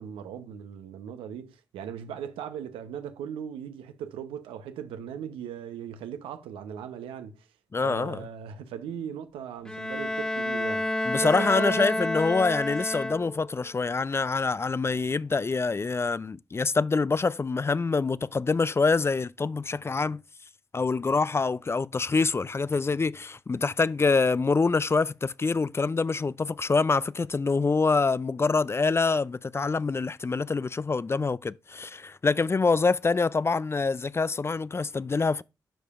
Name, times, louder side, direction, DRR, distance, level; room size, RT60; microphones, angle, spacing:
voice 1, 0.0-7.5 7.8-10.9 11.2-12.1, right 8 dB, 85° right, 0.7 m, -38 dB
voice 2, 7.7-8.3 11.0-20.2 20.7-35.4, left 4 dB, 30° left, 0.3 m, -25 dB
Bowed string instrument, 9.7-13.6, left 1 dB, 10° left, 0.8 m, -29 dB
12.0 x 5.0 x 2.4 m
hypercardioid pair, 40°, 9 cm